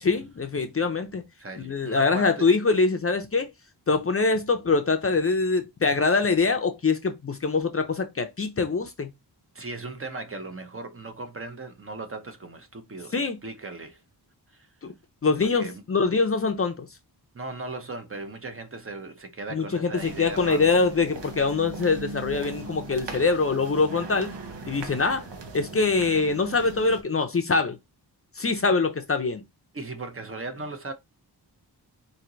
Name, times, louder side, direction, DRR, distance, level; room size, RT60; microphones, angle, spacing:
voice 1, 0.0-1.2 1.6-3.5 3.9-9.1 13.1-13.4 14.8-14.9 15.2-16.9 19.5-24.3 24.7-25.3 25.5-27.8 28.4-29.4, left 4 dB, 35° left, 0.6 m, -24 dB
voice 2, 1.4-2.5 9.5-14.0 14.5-14.7 15.4-15.8 17.3-20.8 29.7-30.9, right 3 dB, 30° right, 0.7 m, -37 dB
sound 1, 20.0-27.0, right 3 dB, 85° right, 1.0 m, -39 dB
4.4 x 2.7 x 3.9 m
wide cardioid pair, 165°, 42 cm